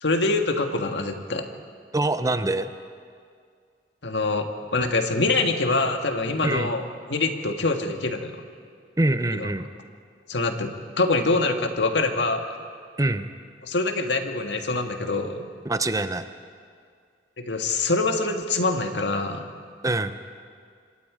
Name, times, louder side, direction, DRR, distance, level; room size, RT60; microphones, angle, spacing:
voice 1, 0.0-1.5 4.0-6.8 7.1-8.3 9.3-9.5 10.3-12.6 13.6-15.5 17.4-19.5, left 3 dB, 85° left, 5 dB, 1.8 m, -25 dB
voice 2, 1.9-2.7 6.4-6.7 9.0-9.7 13.0-13.3 15.6-16.2 19.8-20.2, right 2 dB, 20° right, 10 dB, 0.7 m, -24 dB
27.0 x 24.0 x 5.1 m, 2.2 s
head